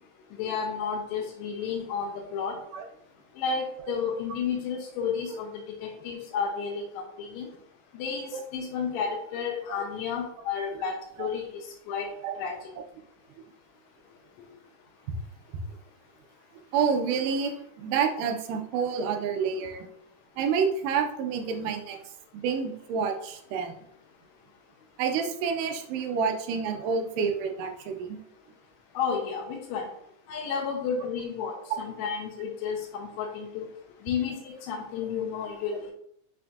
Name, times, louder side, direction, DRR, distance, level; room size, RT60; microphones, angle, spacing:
voice 1, 0.4-2.6 3.4-5.5 5.8-6.8 7.2-7.5 7.9-11.4 11.9-12.1 12.4-12.5 29.0-29.9 30.3-33.7 34.1-35.9, left 6 dB, 80° left, -1 dB, 1.7 m, -31 dB
voice 2, 16.7-19.9 20.4-22.0 22.3-23.7 25.0-28.2, right 6 dB, 85° right, 5 dB, 2.1 m, -28 dB
5.7 x 2.5 x 2.3 m, 0.70 s
omnidirectional pair, 3.6 m